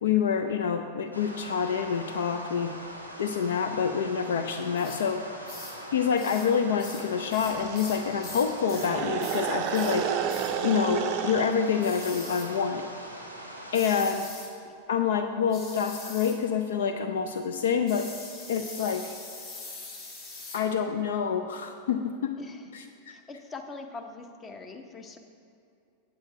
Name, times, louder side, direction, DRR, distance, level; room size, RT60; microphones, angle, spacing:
voice 1, 0.0-2.7 3.2-5.2 5.9-10.1 10.6-12.9 13.7-14.3 14.9-18.1 18.5-19.1 20.5-22.3 22.7-23.1, left 7 dB, 60° left, 7 dB, 0.4 m, -27 dB
sound 1, 1.1-14.0, equal, 90° left, 1.1 m, -42 dB
sound 2, 4.8-5.0 5.5-5.8 6.2-6.5 6.8-8.9 9.2-9.5 9.7-10.0 10.3-10.5 11.8-12.5 13.7-14.5 15.5-16.4 17.9-20.6, left 3 dB, 40° left, 1.7 m, -43 dB
sound 3, 7.4-11.6, right 9 dB, 40° right, 0.5 m, -31 dB
voice 2, 22.4-22.8 23.1-25.2, left 3 dB, 20° left, 5 dB, 0.9 m, -42 dB
8.9 x 8.2 x 4.6 m, 2.6 s
figure-of-eight pair, 90°, 0 cm